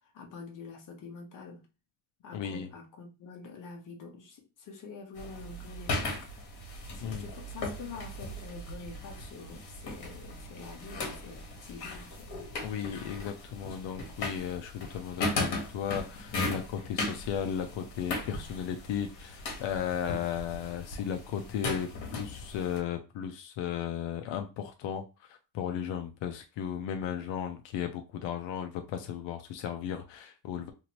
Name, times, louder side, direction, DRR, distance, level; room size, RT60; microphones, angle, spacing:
voice 1, 0.1-1.6 2.2-6.2 6.9-12.3, left 4 dB, 45° left, 1.0 m, -46 dB
voice 2, 2.3-2.7 7.0-7.3 12.6-30.7, left 9 dB, 90° left, 0.6 m, -35 dB
sound 1, 5.2-22.8, left 2 dB, 60° left, 1.3 m, -38 dB
2.9 x 2.6 x 2.9 m
cardioid pair, 145°, 43 cm